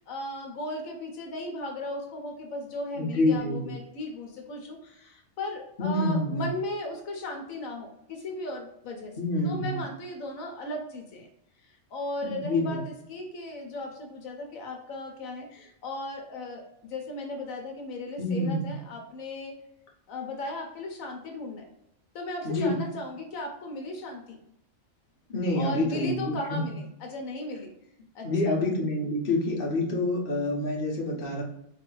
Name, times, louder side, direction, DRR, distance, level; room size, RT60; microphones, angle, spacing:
voice 1, 0.0-9.2 9.4-11.3 11.6-19.6 20.1-21.6 22.1-24.4 25.5-27.7 28.1-28.6, left 2 dB, 80° left, 2 dB, 1.1 m, -36 dB
voice 2, 3.0-3.7 5.8-6.5 9.2-9.8 12.2-12.8 18.2-18.7 22.4-22.7 25.3-26.7 28.2-31.4, left 2 dB, 45° left, -2 dB, 1.0 m, -27 dB
4.0 x 2.6 x 3.0 m, 0.79 s
omnidirectional pair, 1.4 m